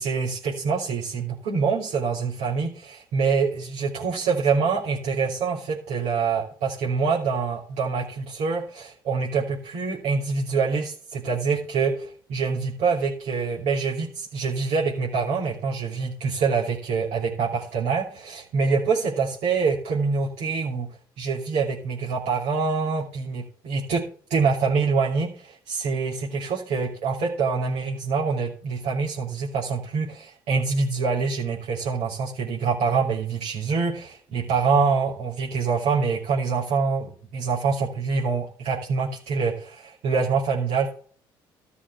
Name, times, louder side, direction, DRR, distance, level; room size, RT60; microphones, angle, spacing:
voice 1, 0.0-20.9 21.2-24.0 24.3-40.9, right 5 dB, 70° right, -4 dB, 2.9 m, -25 dB
13.0 x 6.1 x 5.7 m, 0.43 s
hypercardioid pair, 70°, 11 cm